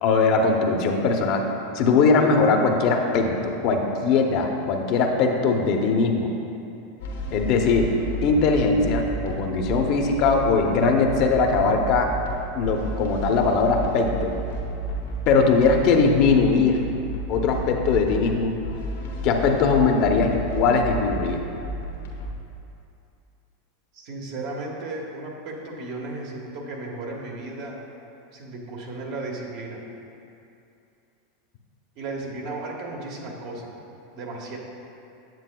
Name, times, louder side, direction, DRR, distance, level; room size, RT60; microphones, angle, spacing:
voice 1, 0.0-1.5 1.7-6.3 7.3-7.9 8.2-12.1 12.5-14.3 15.3-16.8 17.3-18.5 19.2-21.4, left 4 dB, 55° left, 3 dB, 0.7 m, -20 dB
sound 1, 7.0-22.3, right 1 dB, 85° left, 1.0 m, -32 dB
voice 2, 23.9-27.8 28.3-29.8 31.9-33.7 34.1-34.6, right 2 dB, 60° right, -1 dB, 1.4 m, -34 dB
9.1 x 7.4 x 2.3 m, 2.6 s
hypercardioid pair, 110°, 0 cm